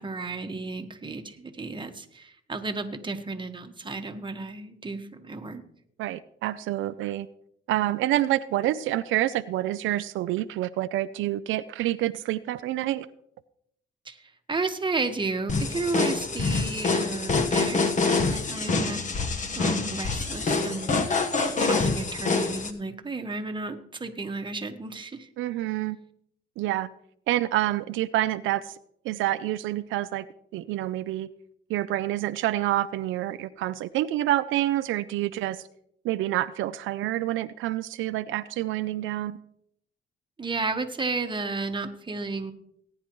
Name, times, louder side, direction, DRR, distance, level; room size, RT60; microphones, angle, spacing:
voice 1, 0.0-5.6 14.0-19.2 19.6-21.2 21.6-25.3 40.4-42.5, right 3 dB, 25° right, 6 dB, 1.3 m, -33 dB
voice 2, 6.0-7.3 7.7-13.1 25.4-26.0 26.6-26.9 27.3-28.8 29.0-30.3 30.5-31.3 31.7-35.6 36.0-39.4, right 14 dB, 85° right, 12 dB, 0.5 m, -27 dB
sound 1, 15.5-22.7, left 3 dB, 40° left, 1.3 m, -26 dB
18.5 x 9.9 x 3.1 m, 0.71 s
cardioid pair, 90°, 20 cm